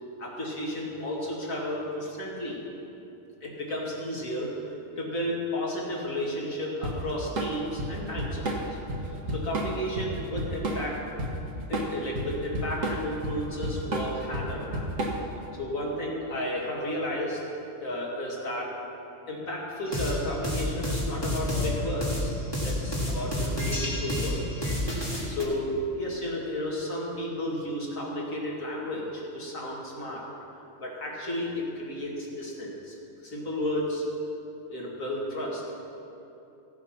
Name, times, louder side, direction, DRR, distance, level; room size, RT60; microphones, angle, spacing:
voice 1, 0.2-2.6 3.4-8.5 9.0-11.0 11.7-14.9 15.6-17.4 17.8-18.7 19.3-22.3 22.6-24.7 25.3-30.2 30.8-33.0 33.2-34.0 34.7-35.6, left 1 dB, 75° left, -4 dB, 2.6 m, -33 dB
Drum kit / Drum, 6.8-15.4, right 1 dB, 70° right, 1.8 m, -31 dB
sound 1, 19.9-25.4, left 1 dB, 20° left, 2.1 m, -29 dB
16.0 x 7.5 x 5.9 m, 2.9 s
omnidirectional pair, 1.4 m